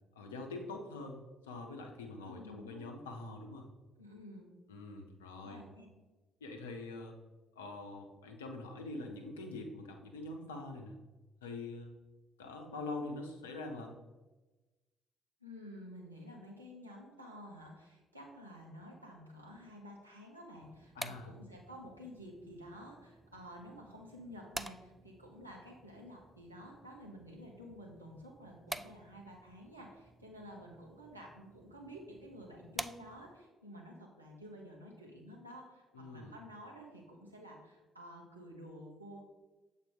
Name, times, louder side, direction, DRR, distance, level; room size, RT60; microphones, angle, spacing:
voice 1, 0.1-3.7 4.7-5.6 6.4-7.2 7.6-11.0 11.4-12.0 12.4-13.9 20.9-21.3 35.9-36.3, left 2 dB, 80° left, 4 dB, 0.6 m, -44 dB
voice 2, 2.2-2.8 4.0-4.5 5.4-5.9 15.4-39.2, equal, 90° right, -1 dB, 0.8 m, -51 dB
sound 1, 20.6-33.5, right 1 dB, 10° right, 0.3 m, -50 dB
7.3 x 3.9 x 3.7 m, 1.2 s
figure-of-eight pair, 45°, 0 cm